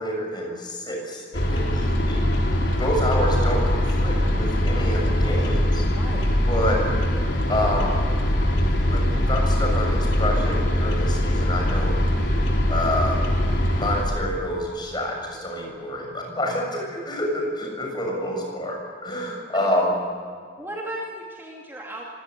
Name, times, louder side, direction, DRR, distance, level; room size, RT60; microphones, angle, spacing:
voice 1, 0.0-5.8 6.5-6.8 7.5-8.0 8.9-11.9 12.7-13.2 13.8-19.9, left 1 dB, 25° left, 1 dB, 7.2 m, -28 dB
sound 1, 1.3-14.0, equal, 85° left, 4.4 m, -22 dB
voice 2, 6.0-6.3 20.6-22.0, right 1 dB, 15° right, -2 dB, 2.6 m, -35 dB
25.5 x 18.0 x 9.9 m, 2.1 s
head